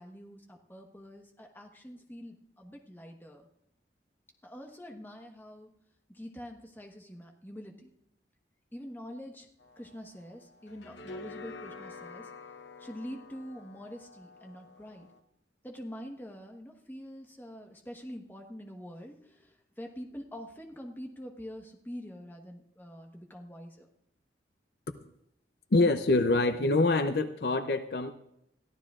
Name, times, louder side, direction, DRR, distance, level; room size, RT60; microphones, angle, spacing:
voice 1, 0.0-3.4 4.4-5.7 6.1-7.9 8.7-9.5 9.8-12.3 12.8-15.1 15.6-23.9, equal, 10° left, 2 dB, 1.2 m, -45 dB
sound 1, 9.6-15.2, left 3 dB, 85° left, 0.9 m, -48 dB
voice 2, 25.7-28.1, left 2 dB, 60° left, 9 dB, 0.6 m, -25 dB
22.0 x 14.5 x 2.4 m, 0.79 s
head